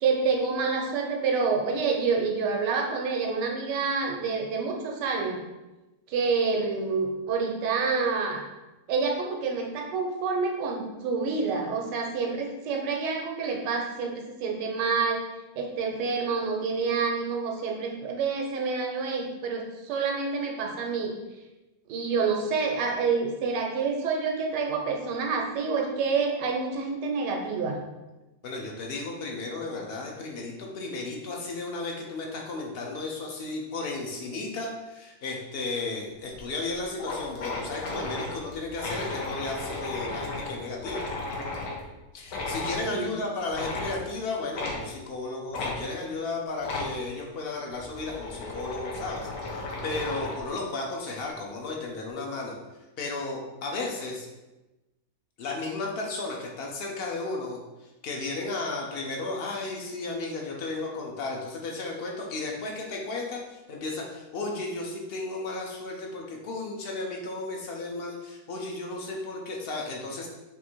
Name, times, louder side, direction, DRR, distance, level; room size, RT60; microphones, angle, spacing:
voice 1, 0.0-5.4 6.1-8.4 8.9-15.2 15.6-21.1 21.9-27.8 42.9-43.1, right 4 dB, 85° right, 2 dB, 1.3 m, -28 dB
voice 2, 28.4-41.0 42.1-52.5 53.0-54.3 55.4-70.3, left 3 dB, 85° left, -1 dB, 0.5 m, -34 dB
sound 1, 36.3-36.4 36.7-36.8 37.0-41.8 42.3-42.8 43.5-44.0 44.5-44.8 45.5-45.8 46.6-46.9 47.7-50.5, left 3 dB, 65° left, 1.2 m, -34 dB
3.6 x 2.6 x 4.3 m, 1.0 s
omnidirectional pair, 1.8 m